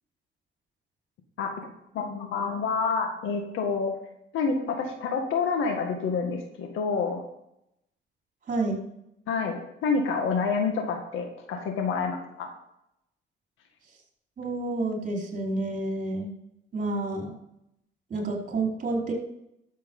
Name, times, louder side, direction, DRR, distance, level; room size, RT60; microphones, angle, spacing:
voice 1, 1.9-3.9 4.3-7.2 9.3-12.5, left 5 dB, 85° left, 3 dB, 1.9 m, -28 dB
voice 2, 8.5-8.8 14.4-16.3 16.7-17.3 18.1-19.1, right 2 dB, 45° right, 0 dB, 4.6 m, -29 dB
12.0 x 7.7 x 5.5 m, 0.79 s
cardioid pair, 90°, 20 cm